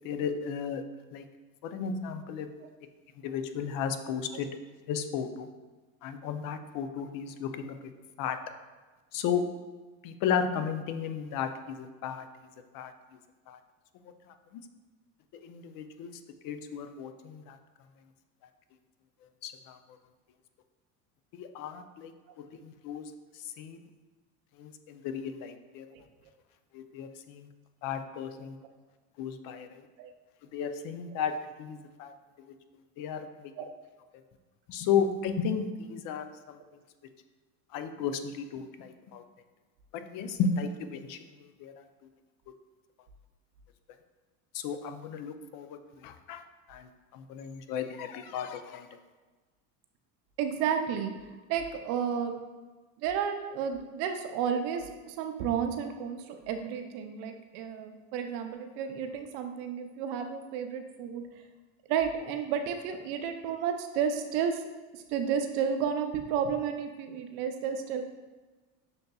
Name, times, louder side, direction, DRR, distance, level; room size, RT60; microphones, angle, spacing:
voice 1, 0.0-0.8 1.1-1.2 1.6-2.5 3.2-4.5 4.9-5.5 6.0-7.8 8.2-8.4 9.1-9.4 10.0-12.3 12.7-12.9 13.5-13.6 14.5-14.6 15.4-16.1 16.4-17.6 19.4-19.8 21.3-22.1 22.6-23.1 23.6-23.8 24.6-25.9 26.7-27.5 27.8-28.6 29.2-29.8 30.5-32.1 33.0-33.5 34.7-36.6 37.7-39.2 39.9-41.2 41.6-41.7 44.5-46.4 46.7-48.9, left 7 dB, 55° left, 8 dB, 0.5 m, -34 dB
voice 2, 50.4-51.1 51.5-52.3 53.0-61.3 61.9-64.6 64.9-68.0, right 7 dB, 70° right, 6 dB, 0.6 m, -32 dB
6.6 x 2.6 x 2.3 m, 1.3 s
supercardioid pair, 110°, 42 cm